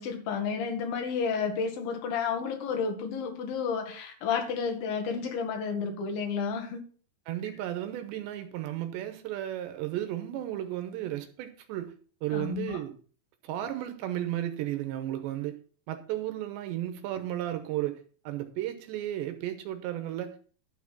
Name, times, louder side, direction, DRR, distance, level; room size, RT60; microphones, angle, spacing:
voice 1, 0.0-6.8 12.3-12.8, left 6 dB, 60° left, 3.0 m, -31 dB
voice 2, 7.3-11.9 12.2-12.9 13.4-15.6 15.9-20.4, right 13 dB, 80° right, 2.9 m, -34 dB
12.0 x 4.9 x 5.9 m
omnidirectional pair, 5.5 m